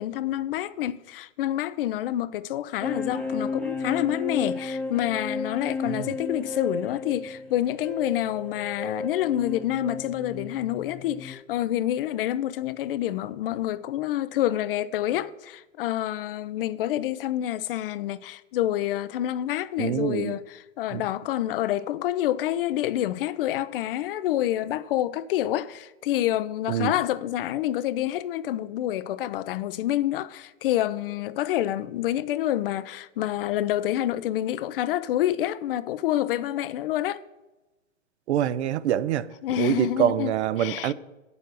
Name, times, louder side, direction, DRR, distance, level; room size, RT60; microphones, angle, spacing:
voice 1, 0.0-37.2 39.4-40.9, left 13 dB, 45° left, 0.5 m, -28 dB
sound 1, 2.8-11.3, left 3 dB, ahead, 0.9 m, -33 dB
voice 2, 19.8-20.3 20.9-21.0 26.7-26.9 38.3-39.3 39.6-40.9, right 11 dB, 55° right, 0.7 m, -25 dB
8.9 x 7.0 x 6.7 m
hypercardioid pair, 110°, 39 cm